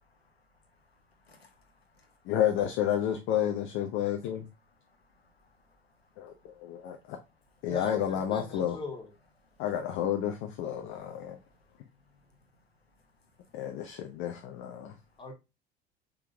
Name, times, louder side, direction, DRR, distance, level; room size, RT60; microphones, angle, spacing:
voice 1, 0.2-2.3 4.6-7.6 9.4-9.6 10.8-13.8 14.8-15.2, left 2 dB, 90° left, 0.9 m, -66 dB
voice 2, 2.3-4.4 6.2-6.3 6.6-7.2 7.6-8.8 9.6-11.4 13.5-14.9, left 10 dB, 45° left, 0.7 m, -30 dB
voice 3, 7.7-9.1 15.2-15.3, left 3 dB, 15° left, 1.7 m, -39 dB
5.1 x 3.5 x 2.8 m
figure-of-eight pair, 70°, 30 cm